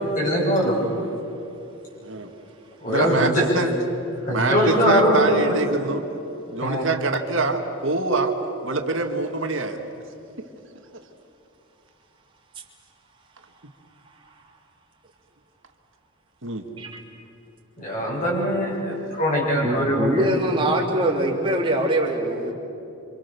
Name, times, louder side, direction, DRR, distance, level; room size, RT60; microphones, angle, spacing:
voice 1, 0.1-0.7 2.8-3.5 4.3-5.6 6.6-6.8 17.8-20.2, equal, 35° left, -5 dB, 7.1 m, -22 dB
voice 2, 2.0-2.3 2.9-3.7 4.3-6.0 6.5-8.3 8.6-9.8 16.4-16.7 18.9-19.0, right 3 dB, 65° right, 4 dB, 1.8 m, -25 dB
voice 3, 19.6-22.5, right 1 dB, 25° right, -1 dB, 3.0 m, -23 dB
27.5 x 26.5 x 6.9 m, 2.9 s
head